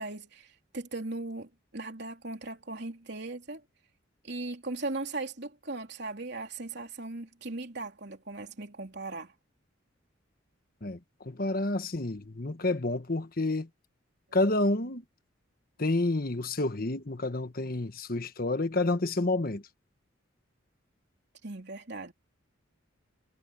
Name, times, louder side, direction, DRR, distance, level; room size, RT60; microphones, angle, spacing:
voice 1, 0.0-3.6 4.2-9.3 21.4-22.1, right 2 dB, 60° right, 3.7 m, -38 dB
voice 2, 10.8-13.7 14.3-15.0 15.8-19.7, left 2 dB, 50° left, 1.3 m, -29 dB
head